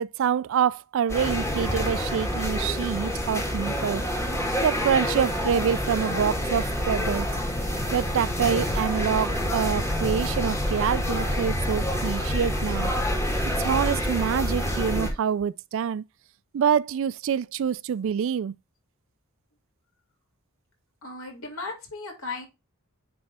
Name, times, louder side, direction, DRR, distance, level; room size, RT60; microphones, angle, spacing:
voice 1, 0.0-4.0 4.6-7.3 7.9-12.9 13.6-16.0 16.5-18.5, right 8 dB, 60° right, 0.3 m, -26 dB
sound 1, 1.1-15.1, equal, 10° left, 1.8 m, -27 dB
voice 2, 21.0-22.5, left 3 dB, 70° left, 3.0 m, -36 dB
9.4 x 3.2 x 4.1 m
head